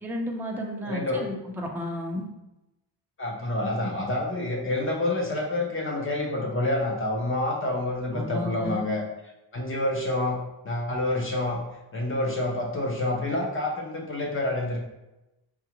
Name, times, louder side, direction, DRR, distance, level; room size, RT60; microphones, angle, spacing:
voice 1, 0.0-2.3 8.1-8.9, left 1 dB, 5° right, 0 dB, 0.4 m, -32 dB
voice 2, 0.8-1.2 3.2-9.0 9.5-10.4 10.6-11.6 11.9-14.8, left 1 dB, 30° left, 0 dB, 0.7 m, -28 dB
4.7 x 2.3 x 2.9 m, 0.95 s
wide cardioid pair, 150°, 45 cm